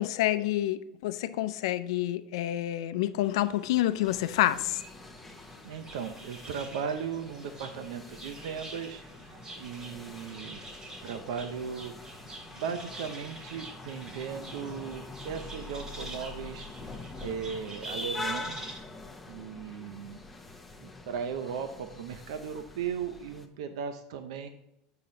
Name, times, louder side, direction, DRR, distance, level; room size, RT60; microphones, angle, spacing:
voice 1, 0.0-4.8, left 14 dB, 80° left, 0.5 m, -28 dB
sound 1, 3.2-18.8, right 1 dB, 25° right, 2.0 m, -47 dB
sound 2, 4.0-23.5, left 2 dB, 5° left, 0.9 m, -44 dB
voice 2, 5.6-10.7 11.0-12.2 12.5-16.7 17.2-18.8 19.3-20.2 20.8-24.5, right 7 dB, 80° right, 0.6 m, -37 dB
7.5 x 5.7 x 3.9 m
supercardioid pair, 120°, 3 cm